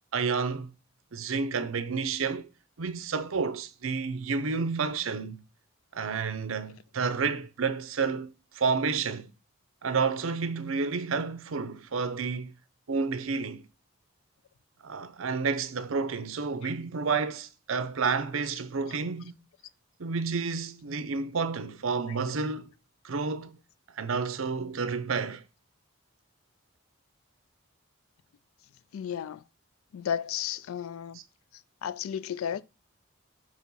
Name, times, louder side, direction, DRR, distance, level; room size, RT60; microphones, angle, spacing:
voice 1, 0.1-0.7 1.1-2.5 2.8-5.4 5.9-9.3 9.8-12.5 12.9-13.6 14.8-19.3 20.0-22.7 23.0-23.6 24.0-25.4, right 5 dB, 75° right, 0.6 m, -30 dB
voice 2, 28.9-29.4 29.9-31.2 31.5-32.6, left 8 dB, 80° left, 0.3 m, -34 dB
4.9 x 4.1 x 5.5 m
head